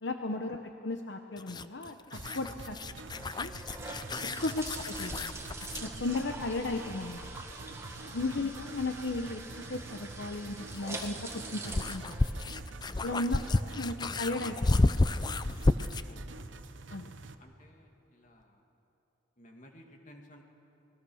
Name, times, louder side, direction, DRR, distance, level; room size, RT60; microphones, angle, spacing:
voice 1, 0.0-2.8 3.2-3.5 4.4-5.4 5.8-7.3 8.1-12.4 13.0-13.4 13.7-15.2 16.9-17.1, left 2 dB, 70° left, 6 dB, 0.9 m, -35 dB
sound 1, 1.4-5.9 8.2-8.3 10.3-16.1, left 2 dB, 25° left, 0.5 m, -31 dB
sound 2, 2.1-17.3, right 3 dB, 80° right, 1.0 m, -47 dB
sound 3, 2.9-13.0, right 3 dB, 15° right, 1.9 m, -45 dB
voice 2, 8.0-8.4 13.1-13.6 16.0-16.6 17.4-18.6 19.4-20.4, left 1 dB, 40° left, 2 dB, 2.4 m, -55 dB
27.5 x 20.0 x 6.4 m, 3.0 s
head